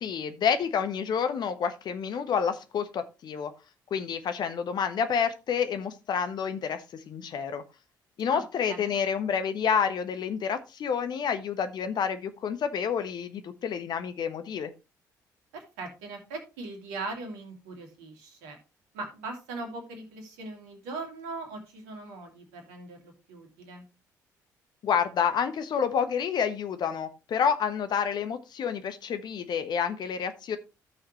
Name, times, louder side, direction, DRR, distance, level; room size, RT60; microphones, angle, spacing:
voice 1, 0.0-3.5 3.9-7.6 8.2-14.7 24.8-30.6, left 7 dB, 50° left, 10 dB, 1.2 m, -29 dB
voice 2, 15.5-18.6 18.9-23.9, right 3 dB, 70° right, 4 dB, 2.4 m, -40 dB
14.5 x 6.4 x 3.1 m, 0.28 s
figure-of-eight pair, 45°, 10 cm